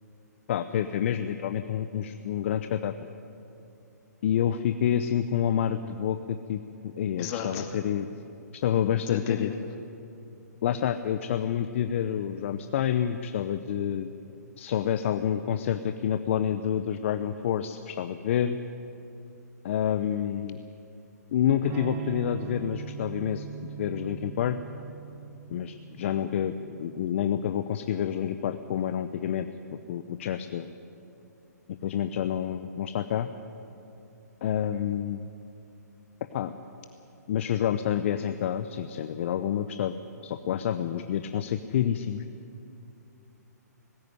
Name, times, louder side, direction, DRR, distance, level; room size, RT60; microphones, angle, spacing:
voice 1, 0.5-2.9 4.2-8.1 8.6-9.5 10.6-14.1 14.6-18.6 19.6-20.6 21.3-23.5 23.8-24.6 25.5-29.5 29.9-30.7 31.8-33.3 34.4-35.3 36.3-36.5 37.3-40.0 40.2-42.2, left 9 dB, 45° left, 10 dB, 0.8 m, -28 dB
voice 2, 7.2-7.8 9.1-9.7, left 8 dB, 30° left, 4 dB, 2.3 m, -34 dB
Electric guitar / Strum, 21.6-27.3, right 8 dB, 25° right, 1.0 m, -40 dB
20.0 x 16.0 x 9.7 m, 2.7 s
figure-of-eight pair, 130°, 9 cm